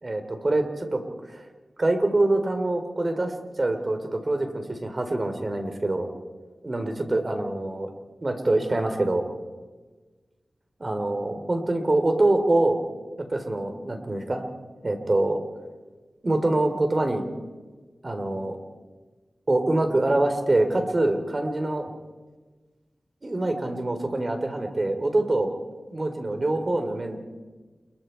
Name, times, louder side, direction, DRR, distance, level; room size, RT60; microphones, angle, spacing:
voice 1, 0.0-1.0 1.3-1.4 1.8-6.1 6.6-7.9 8.2-9.2 10.8-12.8 13.2-14.4 14.8-15.4 16.2-17.2 18.0-18.6 19.5-21.9 23.2-25.5 25.9-27.2, right 2 dB, 40° right, 6 dB, 3.7 m, -25 dB
28.5 x 22.5 x 4.6 m, 1.3 s
cardioid pair, 55°, 0 cm